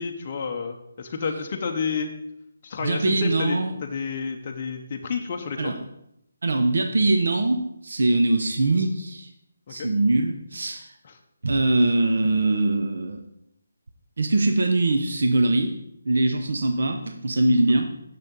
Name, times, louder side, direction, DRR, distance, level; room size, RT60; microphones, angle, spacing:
voice 1, 0.0-2.1 2.6-5.7 9.7-9.9 11.0-11.1 17.7-17.8, left 5 dB, 30° left, 3 dB, 0.6 m, -30 dB
voice 2, 2.8-3.7 5.6-5.8 6.4-9.3 9.7-10.9 11.4-13.2 14.2-15.7 16.1-17.9, right 2 dB, 65° right, 5 dB, 0.8 m, -22 dB
6.8 x 6.6 x 3.8 m, 0.79 s
hypercardioid pair, 175°, 0 cm